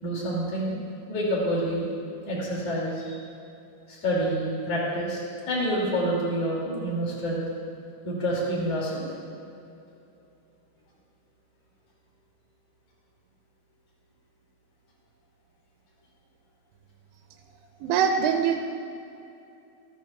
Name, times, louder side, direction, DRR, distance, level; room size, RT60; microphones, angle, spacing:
voice 1, 0.0-0.7 1.1-1.9 2.2-3.2 3.9-5.2 5.5-7.4 8.0-9.1, equal, 40° left, -5 dB, 3.4 m, -27 dB
voice 2, 17.8-18.7, right 7 dB, 85° right, 4 dB, 2.6 m, -23 dB
15.0 x 14.0 x 2.4 m, 2.7 s
omnidirectional pair, 4.7 m